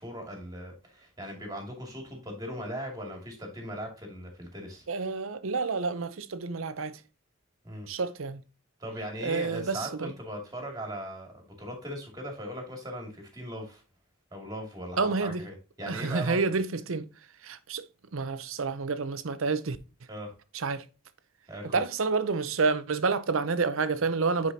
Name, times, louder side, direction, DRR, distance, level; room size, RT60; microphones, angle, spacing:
voice 1, 0.0-4.9 7.6-7.9 8.8-13.8 14.3-16.4 20.1-20.3 21.5-21.8, equal, 20° right, 2.3 m, -39 dB
voice 2, 4.9-7.0 7.9-8.4 9.2-10.1 15.0-15.4 15.9-17.1 17.4-17.8 18.1-19.8 20.5-20.8 21.7-24.5, right 4 dB, 75° right, 0.7 m, -29 dB
9.8 x 4.9 x 2.8 m
head